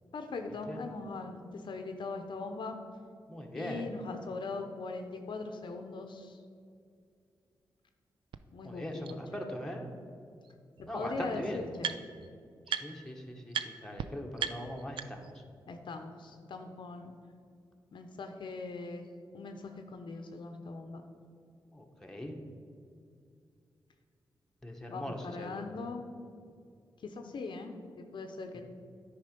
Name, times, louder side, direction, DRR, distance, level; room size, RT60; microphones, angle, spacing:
voice 1, 0.1-2.8 3.5-6.4 8.5-9.4 10.8-11.9 15.7-17.1 17.9-19.1 19.3-21.0 24.9-26.0 27.0-28.6, left 3 dB, 70° left, 5 dB, 0.7 m, -40 dB
voice 2, 3.3-3.8 8.6-9.9 10.8-11.6 12.8-15.2 21.7-22.3 24.6-25.6 28.5-28.6, left 1 dB, 5° left, 1 dB, 1.2 m, -40 dB
sound 1, 8.3-8.4 9.0-9.1 10.4-10.5 10.8-12.3 12.7-13.1 13.5-13.7 14.0-14.1 14.4-15.4, right 8 dB, 75° right, 0.4 m, -37 dB
9.4 x 4.9 x 5.2 m, 2.3 s
cardioid pair, 55°, 9 cm